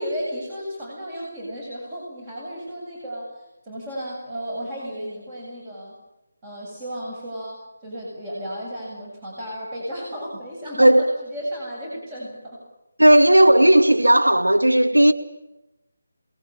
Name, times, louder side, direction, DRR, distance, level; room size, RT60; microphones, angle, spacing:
voice 1, 0.0-6.0 6.4-12.6, equal, 20° right, 7.9 m, -34 dB
voice 2, 10.8-11.1 13.0-15.1, right 1 dB, 80° right, 2.5 m, -14 dB
27.5 x 21.0 x 9.0 m
figure-of-eight pair, 155°, 0 cm